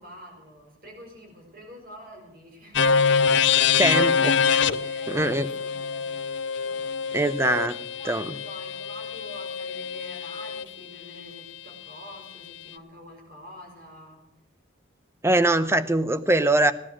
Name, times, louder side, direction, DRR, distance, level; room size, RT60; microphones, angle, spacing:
voice 1, 0.0-3.0 3.5-6.1 6.6-7.0 7.9-14.2, equal, 45° right, 1 dB, 5.4 m, -46 dB
sound 1, 2.7-10.6, left 6 dB, 70° left, 0.6 m, -25 dB
voice 2, 3.8-4.3 5.1-5.5 7.1-8.2 15.2-16.7, right 2 dB, 15° right, 12 dB, 0.7 m, -22 dB
17.0 x 10.5 x 6.2 m, 0.87 s
head